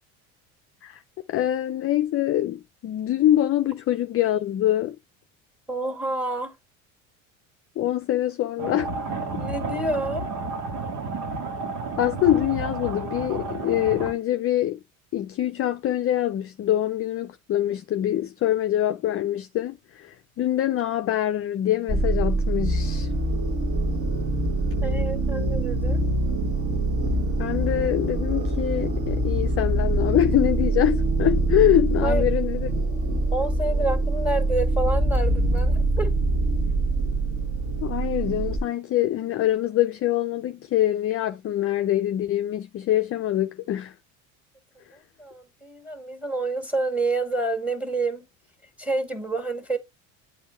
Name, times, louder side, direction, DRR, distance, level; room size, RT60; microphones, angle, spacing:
voice 1, 1.3-5.0 7.8-8.9 12.0-14.8 15.1-23.1 27.4-32.7 37.8-43.9, left 12 dB, 35° left, 0.5 m, -24 dB
voice 2, 5.7-6.5 9.3-10.3 23.8-24.0 24.8-26.0 32.0-32.2 33.3-36.1 44.9-48.3 48.8-49.8, right 2 dB, 5° right, 1.8 m, -28 dB
sound 1, 8.6-14.1, right 3 dB, 80° right, 1.7 m, -31 dB
sound 2, 21.9-38.6, right 2 dB, 30° right, 1.5 m, -24 dB
8.0 x 3.1 x 4.5 m
supercardioid pair, 90°, 43 cm